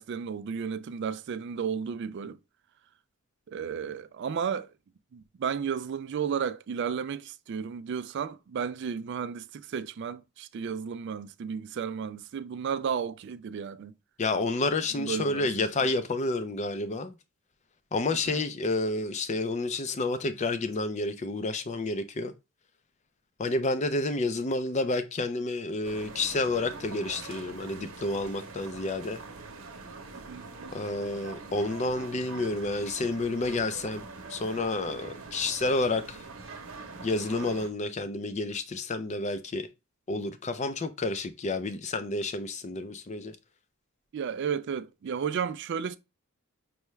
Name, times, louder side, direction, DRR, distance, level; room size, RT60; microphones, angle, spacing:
voice 1, 0.0-2.4 3.5-4.7 5.1-13.9 15.0-15.7 18.3-18.4 30.1-30.5 44.1-46.0, right 7 dB, 55° right, 0.3 m, -33 dB
voice 2, 14.2-17.1 17.9-22.3 23.4-29.2 30.7-36.2 37.0-39.7 40.1-43.4, left 2 dB, 30° left, 0.4 m, -30 dB
sound 1, 25.8-37.7, right 3 dB, 70° right, 0.8 m, -44 dB
5.5 x 2.3 x 3.1 m
head